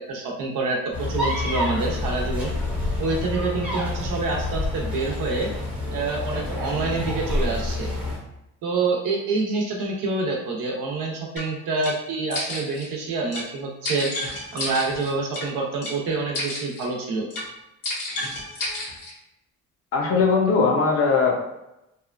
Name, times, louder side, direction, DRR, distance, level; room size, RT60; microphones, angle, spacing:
voice 1, 0.1-2.5 3.0-5.5 5.9-7.9 8.6-14.1 14.5-17.3, right 3 dB, 85° right, -1 dB, 0.8 m, -27 dB
sound 1, 0.9-8.2, left 2 dB, 5° right, 0.6 m, -28 dB
sound 2, 11.4-11.5 11.8-12.0 12.3-12.9 13.3-13.5 13.8-15.5 15.8-16.0 16.3-16.9 17.3-17.5 17.8-19.1, left 2 dB, 80° left, 1.3 m, -31 dB
voice 2, 19.9-21.4, left 4 dB, 50° left, 0 dB, 0.6 m, -19 dB
2.8 x 2.2 x 2.5 m, 0.90 s
cardioid pair, 155°, 32 cm